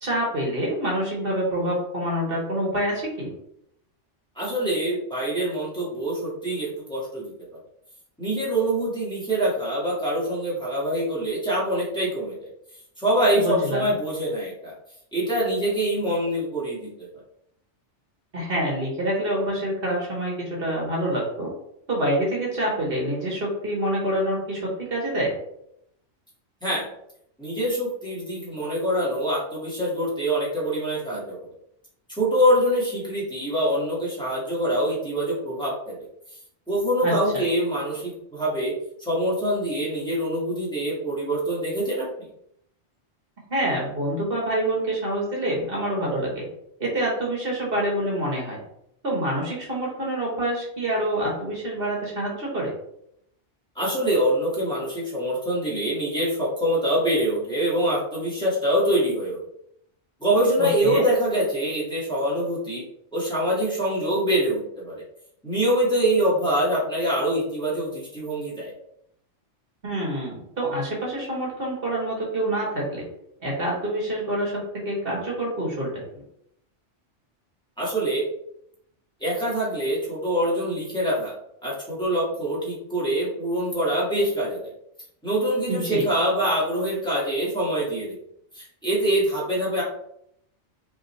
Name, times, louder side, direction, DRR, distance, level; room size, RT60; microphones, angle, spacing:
voice 1, 0.0-3.3 13.4-13.9 18.3-21.5 21.9-25.3 37.0-37.4 43.5-46.5 46.8-48.6 49.0-52.7 60.6-61.0 69.8-73.0 73.4-76.0 85.7-86.0, right 1 dB, 55° right, -3 dB, 1.4 m, -26 dB
voice 2, 4.4-7.3 8.2-12.5 13.0-14.7 15.1-17.1 26.6-26.9 27.4-31.4 32.2-36.0 36.7-38.7 39.0-42.1 53.8-59.4 60.2-62.8 63.1-65.0 65.4-68.7 77.8-78.2 79.2-81.3 81.6-84.6 85.2-88.2 88.5-89.8, right 1 dB, 5° left, -7 dB, 1.8 m, -24 dB
5.2 x 3.1 x 3.2 m, 0.75 s
omnidirectional pair, 1.2 m